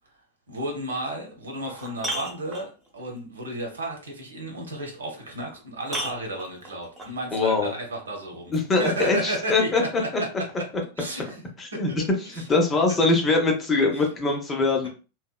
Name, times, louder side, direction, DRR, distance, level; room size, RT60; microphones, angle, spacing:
voice 1, 0.5-10.3 11.0-11.4 11.7-12.0 12.3-12.4, right 1 dB, 70° right, 1 dB, 0.8 m, -33 dB
sound 1, 1.0-1.1 1.5-3.0 5.0-5.1 5.8-7.2 8.5-8.6, right 1 dB, 20° right, 0.9 m, -34 dB
voice 2, 7.3-7.7 8.5-9.8 10.1-10.2 11.6-14.9, left 3 dB, 20° left, 2 dB, 0.6 m, -23 dB
2.7 x 2.0 x 2.2 m, 0.34 s
figure-of-eight pair, 90°, 0 cm